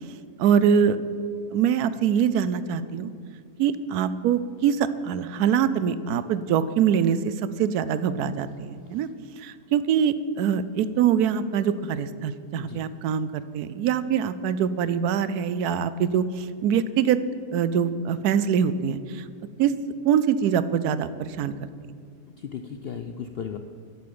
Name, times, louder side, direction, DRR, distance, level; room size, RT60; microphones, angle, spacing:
voice 1, 0.4-1.0 1.5-3.1 3.6-9.1 9.4-17.2 17.5-19.3 19.6-19.7 20.0-21.5, right 8 dB, 80° right, 14 dB, 1.1 m, -24 dB
voice 2, 12.5-12.9 22.4-23.6, left 7 dB, 70° left, 7 dB, 0.5 m, -35 dB
10.5 x 8.4 x 8.6 m, 2.2 s
omnidirectional pair, 1.7 m